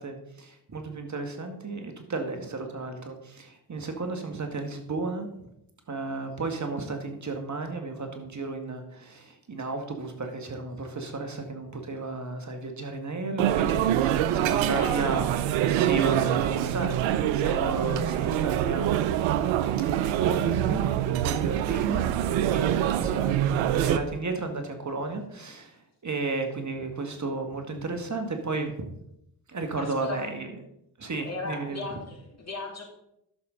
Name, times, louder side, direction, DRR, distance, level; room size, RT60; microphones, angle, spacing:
voice 1, 0.0-5.3 5.9-15.3 15.7-20.9 21.2-22.1 22.4-28.9 29.5-30.5 31.0-31.9, right 3 dB, 40° right, 5 dB, 1.9 m, -33 dB
sound 1, 13.4-24.0, right 11 dB, 85° right, 0.7 m, -25 dB
voice 2, 29.8-30.2 31.2-32.8, left 3 dB, 35° left, -2 dB, 3.8 m, -37 dB
12.0 x 6.7 x 4.0 m, 0.81 s
hypercardioid pair, 45°, 45 cm